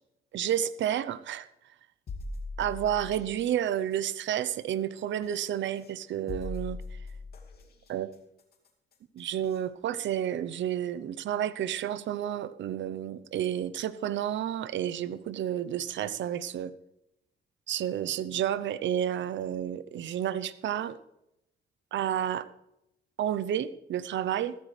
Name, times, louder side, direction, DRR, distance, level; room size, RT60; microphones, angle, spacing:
voice 1, 0.3-1.5 2.6-6.8 7.9-8.1 9.1-16.7 17.7-21.0 21.9-22.5 23.2-24.6, right 10 dB, 70° right, 15 dB, 0.8 m, -30 dB
sound 1, 2.1-3.4 5.2-5.3 6.3-7.6 9.4-9.5 10.0-10.1, left 2 dB, 50° left, 2.5 m, -39 dB
15.0 x 13.5 x 3.3 m, 0.85 s
cardioid pair, 90°, 20 cm